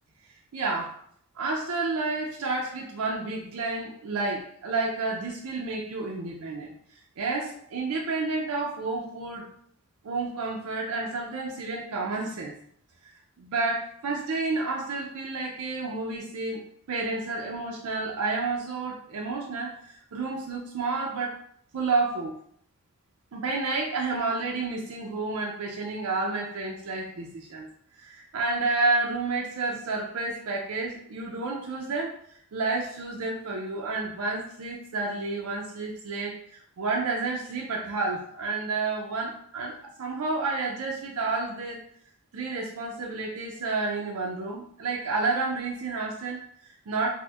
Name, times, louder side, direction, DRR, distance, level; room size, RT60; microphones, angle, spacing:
voice 1, 0.5-1.0 1.4-6.7 7.2-9.5 10.0-12.5 13.4-16.6 16.9-21.4 21.7-22.4 23.3-27.7 28.0-32.2 32.5-41.8 42.3-47.1, right 3 dB, 80° right, -2 dB, 0.5 m, -30 dB
4.2 x 2.1 x 2.3 m, 0.65 s
head